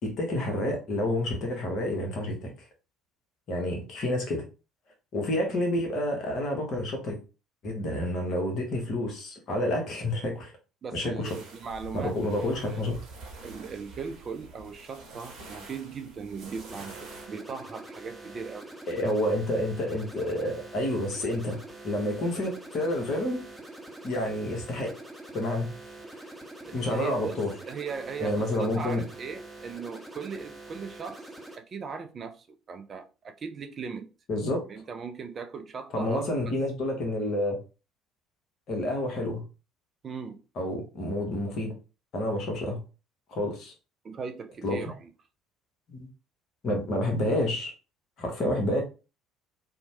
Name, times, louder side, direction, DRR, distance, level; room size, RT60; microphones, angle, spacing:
voice 1, 0.0-2.5 3.5-4.4 5.1-7.2 7.6-10.5 10.9-11.3 11.9-12.9 18.9-23.4 24.0-24.9 25.3-25.7 26.7-27.5 28.2-29.0 34.3-34.6 35.9-37.6 38.7-39.4 40.6-41.7 42.1-42.8 43.3-43.7 44.6-44.8 45.9-46.1 46.6-47.7 48.2-48.8, left 1 dB, 45° left, 1.0 m, -29 dB
voice 2, 10.8-13.0 13.4-18.6 26.9-31.3 31.5-34.1 34.7-36.5 40.0-40.4 44.0-45.1, right 5 dB, 35° right, 0.4 m, -38 dB
sound 1, 11.2-17.3, right 2 dB, 55° right, 0.9 m, -46 dB
sound 2, 16.7-31.6, right 2 dB, ahead, 0.9 m, -45 dB
2.8 x 2.1 x 2.7 m
figure-of-eight pair, 55°, 0 cm